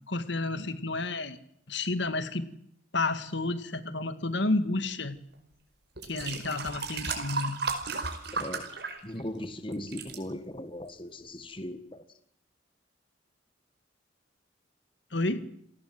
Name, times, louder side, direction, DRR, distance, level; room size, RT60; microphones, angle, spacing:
voice 1, 0.0-1.4 1.7-2.5 2.9-5.2 6.0-7.6 15.1-15.5, left 2 dB, 60° left, 2.1 m, -30 dB
sound 1, 5.3-5.4 6.0-9.4 9.7-10.2 10.9-11.0, right 4 dB, 55° right, 5.0 m, -34 dB
voice 2, 8.3-8.7 9.0-12.0, left 1 dB, 25° left, 1.7 m, -38 dB
29.0 x 18.5 x 7.8 m
head